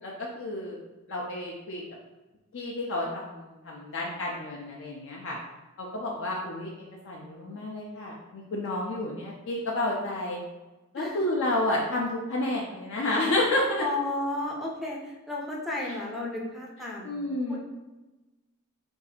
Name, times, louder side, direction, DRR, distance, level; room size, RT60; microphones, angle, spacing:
voice 1, 0.0-0.8 1.1-1.8 2.5-5.4 5.8-6.7 7.0-10.4 10.9-13.8 17.0-17.6, left 1 dB, 60° left, -2 dB, 0.4 m, -30 dB
voice 2, 13.8-17.1 17.5-17.6, left 2 dB, ahead, -2 dB, 0.4 m, -33 dB
2.6 x 2.4 x 4.0 m, 1.2 s
head